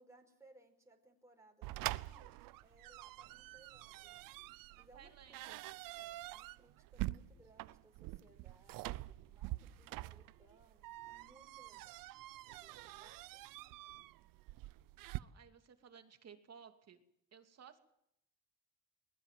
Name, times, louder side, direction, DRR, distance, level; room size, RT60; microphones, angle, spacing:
voice 1, 0.0-4.2 4.8-5.6 5.9-12.0 12.4-13.8, right 2 dB, 10° right, 1 dB, 5.2 m, -66 dB
sound 1, 1.6-15.2, right 18 dB, 85° right, 0.8 m, -46 dB
voice 2, 4.8-5.6 15.0-17.0 17.3-17.8, right 7 dB, 50° right, 6 dB, 2.8 m, -58 dB
21.5 x 20.0 x 7.6 m, 0.76 s
cardioid pair, 95°, 32 cm